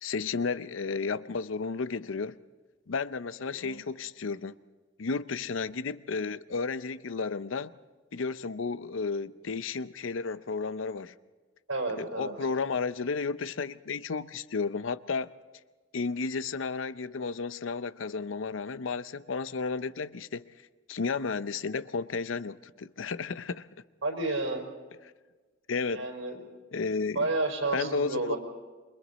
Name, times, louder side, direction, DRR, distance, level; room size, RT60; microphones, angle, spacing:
voice 1, 0.0-2.4 2.9-4.6 5.0-7.7 8.1-11.1 12.0-15.3 15.9-20.5 20.9-23.7 25.7-26.1 26.7-27.3 27.7-28.3, left 4 dB, 75° left, 0.6 m, -33 dB
voice 2, 11.7-12.3 24.0-24.7 25.9-26.4 27.1-28.4, right 2 dB, 85° right, 4.4 m, -31 dB
28.0 x 24.5 x 4.1 m
head